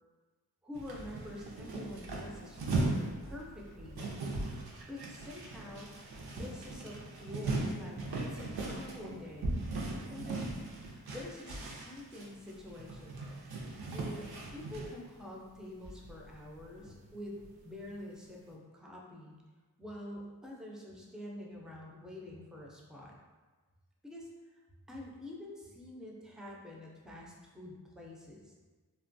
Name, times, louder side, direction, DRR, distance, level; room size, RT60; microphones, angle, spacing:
voice 1, 0.6-4.1 4.9-5.9 6.3-9.7 10.1-10.5 11.1-13.3 13.9-17.4 17.6-19.4 19.8-23.1 24.0-24.6 24.9-28.5, left 1 dB, ahead, -2 dB, 0.4 m, -47 dB
sound 1, 0.7-15.0 15.6-15.7 15.8-17.1 17.4-17.5, right 2 dB, 85° right, 0.5 m, -38 dB
2.8 x 2.2 x 2.5 m, 1.3 s
wide cardioid pair, 70°, 37 cm